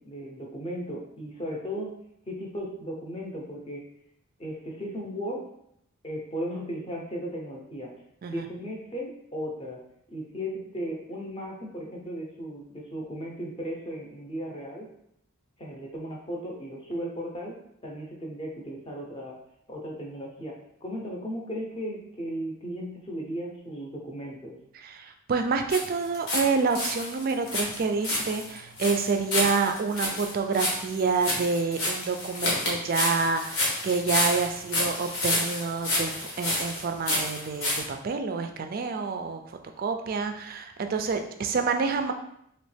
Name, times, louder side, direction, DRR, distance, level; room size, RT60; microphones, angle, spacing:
voice 1, 0.0-2.0 2.3-3.9 4.4-5.5 6.0-7.9 8.3-9.8 10.1-14.9 15.6-19.3 19.7-20.6 20.8-24.6, equal, 25° left, -1 dB, 0.6 m, -36 dB
voice 2, 24.8-42.1, right 4 dB, 40° right, 6 dB, 0.3 m, -28 dB
sound 1, 25.7-26.5 26.7-37.8, left 1 dB, 85° left, 1.2 m, -29 dB
3.1 x 2.9 x 3.2 m, 0.74 s
head